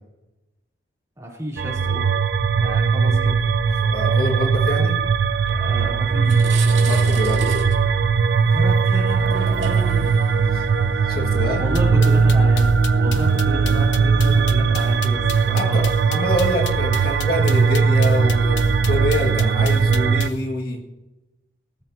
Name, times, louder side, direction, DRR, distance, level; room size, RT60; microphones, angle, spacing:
voice 1, 1.2-2.2 2.5-3.4 5.5-6.5 8.4-10.1 11.6-15.9, equal, 15° right, -3 dB, 3.2 m, -31 dB
sound 1, 1.6-20.3, right 5 dB, 70° right, 0.5 m, -19 dB
voice 2, 3.8-4.9 6.8-7.6 10.5-10.7 11.1-11.6 15.5-18.6 18.9-20.8, left 1 dB, 50° left, 0 dB, 1.8 m, -25 dB
sound 2, 5.6-5.8 6.1-13.4, right 4 dB, 90° right, 2.0 m, -35 dB
sound 3, 11.8-20.4, left 10 dB, 75° left, 0.9 m, -35 dB
19.0 x 12.5 x 2.8 m, 1.0 s
head